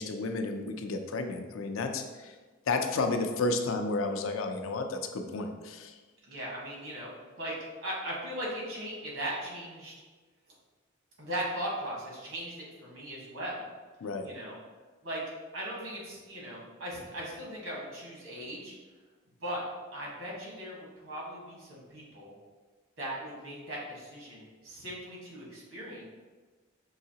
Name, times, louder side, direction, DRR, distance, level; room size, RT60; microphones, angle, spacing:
voice 1, 0.0-2.3 2.7-5.9 14.0-14.3, left 3 dB, 75° left, 6 dB, 0.4 m, -32 dB
voice 2, 6.3-7.1 7.4-7.5 7.8-9.9 11.2-13.7 14.2-14.6 15.0-15.2 15.5-18.7 19.4-19.6 19.9-22.3 23.0-26.0, right 1 dB, 75° right, -4 dB, 1.5 m, -38 dB
5.5 x 2.8 x 2.8 m, 1.3 s
head